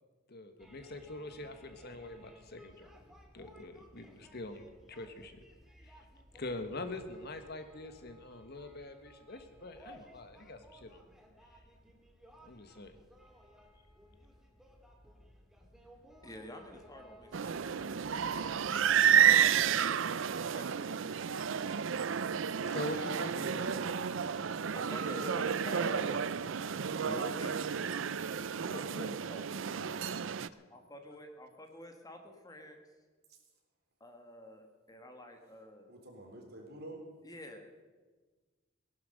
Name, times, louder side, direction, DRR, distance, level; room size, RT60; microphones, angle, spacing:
voice 1, 0.3-2.9 3.3-5.4 5.8-6.0 6.3-11.0 12.4-12.9 22.7-24.0 28.6-29.2 29.7-30.1, left 2 dB, 55° left, 8 dB, 1.4 m, -44 dB
sound 1, 0.6-19.7, equal, ahead, 2.1 m, -59 dB
voice 2, 16.2-18.6 20.3-22.2 22.6-23.0 24.7-26.2 27.0-27.8 28.7-29.8 30.7-32.8 34.0-35.9 37.2-37.8, equal, 20° left, 4 dB, 1.7 m, -48 dB
sound 2, 17.3-30.5, right 8 dB, 70° right, 0.5 m, -31 dB
voice 3, 35.9-37.0, right 1 dB, 55° right, 1 dB, 3.6 m, -48 dB
19.0 x 11.5 x 6.6 m, 1.3 s
head